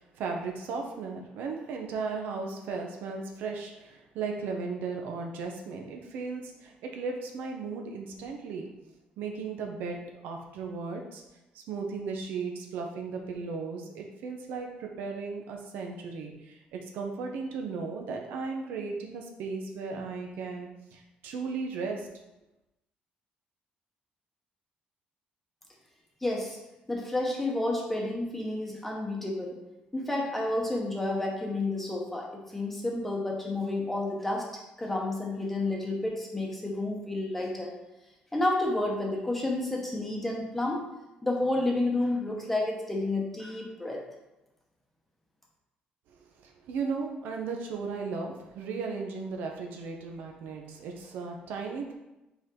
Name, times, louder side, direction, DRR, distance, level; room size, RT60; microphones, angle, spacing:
voice 1, 0.0-8.7 9.2-11.2 11.5-22.1 46.4-51.9, right 4 dB, 80° right, 2 dB, 1.0 m, -36 dB
voice 2, 26.2-26.6 26.9-29.6 29.9-34.5 34.8-37.7 38.3-40.8 41.2-44.0, left 2 dB, 5° left, -1 dB, 0.9 m, -30 dB
5.5 x 4.6 x 3.8 m, 0.97 s
cardioid pair, 175°, 3 cm